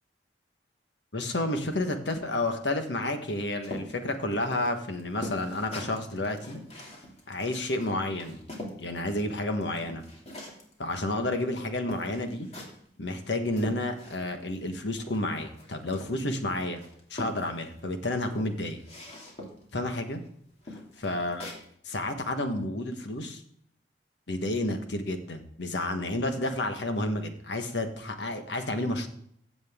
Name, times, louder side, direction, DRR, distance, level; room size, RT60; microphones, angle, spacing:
voice 1, 1.1-6.6 7.3-8.4 8.8-10.0 10.8-12.5 13.0-16.8 17.1-18.8 19.7-20.2 21.0-21.5 21.8-23.4 24.3-29.1, left 1 dB, 80° left, 6 dB, 1.4 m, -30 dB
sound 1, 3.6-8.8 9.2-10.7 11.4-11.5 11.9-12.9 13.2-14.4 14.7-16.4 16.8-17.8 18.2-19.7 20.1-20.3 20.6-21.6, equal, 40° left, 2.6 m, -43 dB
15.0 x 7.9 x 3.7 m, 0.68 s
head